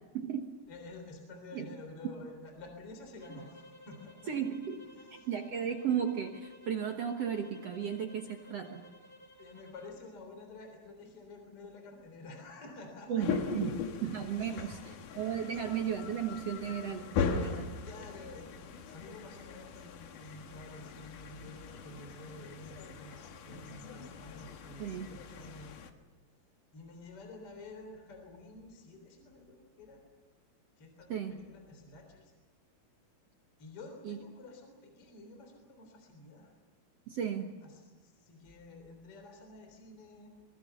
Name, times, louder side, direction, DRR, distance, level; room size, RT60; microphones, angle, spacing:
voice 1, 0.1-0.5 1.5-1.7 4.3-4.9 5.3-8.8 13.1-13.7 14.0-14.8 15.2-17.7 24.8-25.1 31.1-31.4 34.0-34.2 37.1-37.5, right 8 dB, 60° right, 4 dB, 1.7 m, -35 dB
voice 2, 0.7-4.3 4.8-5.3 9.4-13.3 14.4-15.0 15.3-15.8 17.8-25.8 26.7-30.0 30.8-32.3 33.6-36.5 37.6-40.3, left 2 dB, 35° left, 4 dB, 4.3 m, -50 dB
sound 1, 3.2-10.0, equal, 20° left, 1.9 m, -56 dB
sound 2, 13.2-25.9, left 6 dB, 60° left, 2.8 m, -39 dB
23.5 x 23.0 x 7.0 m, 1.2 s
omnidirectional pair, 4.5 m